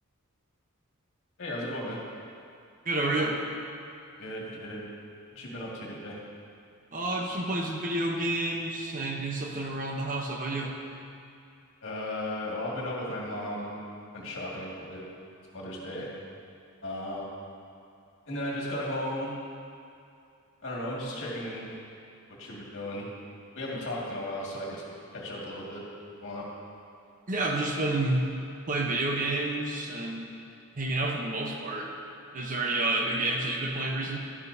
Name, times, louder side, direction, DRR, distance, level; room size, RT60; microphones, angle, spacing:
voice 1, 1.4-2.0 4.2-4.9 5.3-6.2 11.8-13.9 14.1-15.0 15.5-16.1 16.8-17.3 18.3-19.4 20.6-21.7 22.3-23.1 23.6-24.8 25.1-25.8 26.2-26.5, left 1 dB, 60° left, -4 dB, 2.1 m, -35 dB
voice 2, 2.9-3.4 6.9-10.7 27.3-28.2 28.7-30.3 30.7-31.9 32.3-34.2, right 2 dB, 40° right, 1 dB, 0.9 m, -29 dB
12.0 x 10.5 x 2.7 m, 2.4 s
head